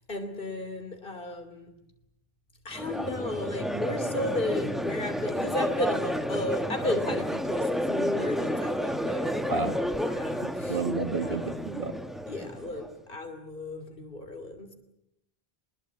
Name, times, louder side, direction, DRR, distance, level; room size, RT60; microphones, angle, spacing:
voice 1, 0.1-1.7 2.6-10.8 11.2-11.4 12.3-14.7, left 2 dB, 55° left, 8 dB, 3.1 m, -34 dB
Crowd, 2.7-12.9, equal, ahead, 1.1 m, -31 dB
voice 2, 10.6-12.0, right 4 dB, 60° right, 7 dB, 1.8 m, -31 dB
24.5 x 21.0 x 8.7 m, 0.82 s
omnidirectional pair, 1.1 m